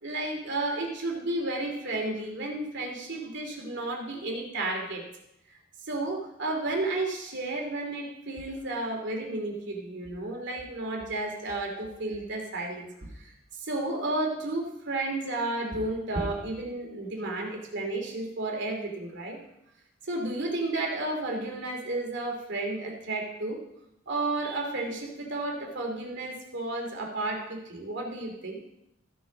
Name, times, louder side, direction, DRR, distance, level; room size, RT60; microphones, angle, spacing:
voice 1, 0.0-5.0 5.9-12.9 13.1-19.4 20.0-23.6 24.1-28.6, right 2 dB, 60° right, 1 dB, 2.7 m, -32 dB
15.0 x 7.2 x 5.2 m, 0.80 s
head